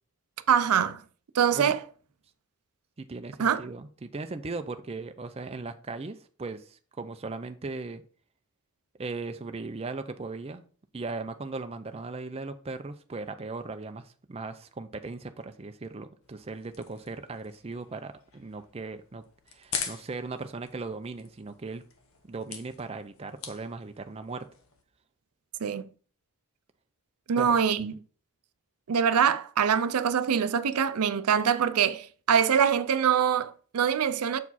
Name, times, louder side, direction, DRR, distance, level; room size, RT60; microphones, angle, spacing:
voice 1, 0.5-1.0 1.3-1.8 3.4-3.6 25.6-25.9 27.3-27.9 28.9-34.4, right 7 dB, 90° right, 0.5 m, -24 dB
voice 2, 3.0-8.0 9.0-10.6 10.9-19.2 19.5-21.8 22.3-24.5 27.4-27.5, right 3 dB, 25° right, 0.5 m, -38 dB
sound 1, 16.2-24.8, left 6 dB, 65° left, 1.0 m, -43 dB
7.2 x 4.7 x 4.1 m
head